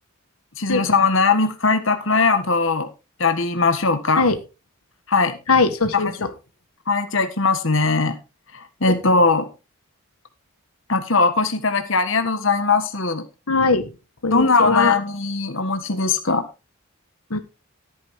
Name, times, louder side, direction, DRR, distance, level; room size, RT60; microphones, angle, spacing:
voice 1, 0.6-2.9 3.2-4.2 5.1-5.4 5.9-6.1 6.9-8.2 8.5-9.5 10.9-13.2 14.3-16.5, left 4 dB, 60° left, 1.6 m, -20 dB
voice 2, 5.5-6.3 13.5-13.9 14.2-14.9 17.3-17.4, left 4 dB, 85° left, 1.6 m, -20 dB
14.0 x 9.6 x 3.7 m
head